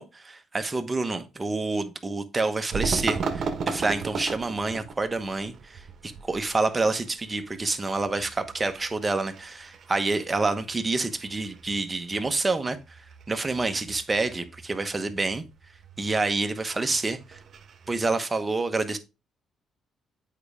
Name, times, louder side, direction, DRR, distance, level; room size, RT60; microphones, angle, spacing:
voice 1, 0.0-13.0 13.3-15.4 16.0-17.4 17.9-19.0, right 3 dB, 25° right, 1.1 m, -28 dB
sound 1, 2.7-18.1, right 5 dB, 55° right, 1.2 m, -37 dB
7.9 x 4.9 x 3.3 m
cardioid pair, 90°, 0 cm